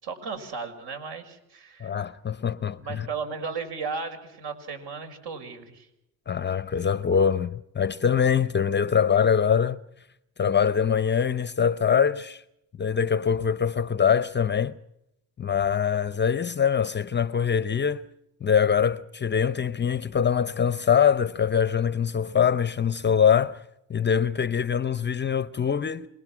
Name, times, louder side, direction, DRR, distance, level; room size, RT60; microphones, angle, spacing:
voice 1, 0.0-1.9 2.7-5.9 6.8-7.0, right 5 dB, 60° right, 6.0 m, -35 dB
voice 2, 1.8-3.1 6.3-9.8 10.4-12.4 12.8-14.7 15.4-18.0 18.4-23.6 23.9-26.1, left 7 dB, 25° left, 0.7 m, -23 dB
27.0 x 20.5 x 6.1 m
supercardioid pair, 100°, 43 cm